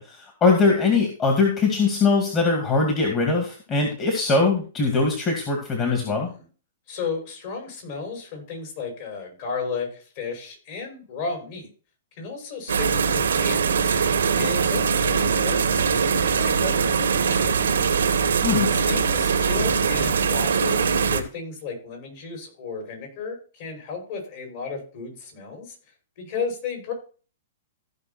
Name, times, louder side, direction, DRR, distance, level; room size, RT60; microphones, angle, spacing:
voice 1, 0.0-6.3 18.4-18.7, left 4 dB, 25° left, 2 dB, 2.3 m, -21 dB
voice 2, 5.9-6.5 6.9-11.7 12.2-13.9 14.3-15.8 16.1-17.6 18.7-25.8 26.2-26.9, left 4 dB, 50° left, 2 dB, 6.2 m, -34 dB
sound 1, 12.7-21.2, right 6 dB, 90° right, 1.7 m, -22 dB
15.0 x 5.6 x 4.4 m, 0.37 s
hypercardioid pair, 140°, 0 cm